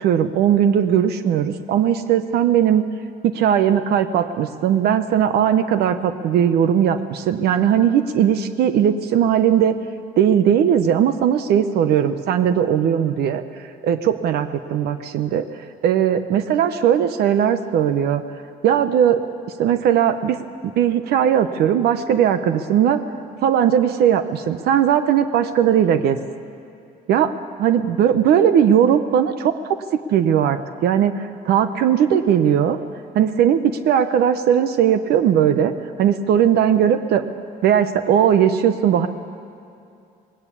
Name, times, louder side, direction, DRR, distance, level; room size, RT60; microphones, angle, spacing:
voice 1, 0.0-2.8 3.2-9.8 10.2-13.4 13.8-15.5 15.8-18.2 18.6-19.2 19.6-20.4 20.8-23.0 23.4-26.2 27.1-27.3 27.6-32.8 33.1-35.7 36.0-37.2 37.6-39.1, right 9 dB, 70° right, 10 dB, 0.9 m, -18 dB
19.0 x 17.0 x 8.5 m, 2.6 s
cardioid pair, 110°, 17 cm